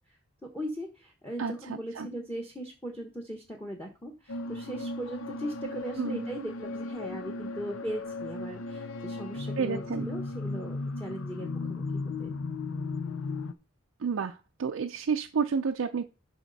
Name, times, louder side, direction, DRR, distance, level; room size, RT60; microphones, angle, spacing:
voice 1, 0.4-12.3, equal, 10° left, 3 dB, 1.2 m, -39 dB
voice 2, 1.4-2.1 6.0-6.3 9.6-10.1 14.0-16.0, right 6 dB, 80° right, 5 dB, 0.5 m, -30 dB
sound 1, 4.3-13.5, left 3 dB, 85° left, 0.7 m, -36 dB
12.0 x 4.2 x 4.0 m, 0.33 s
head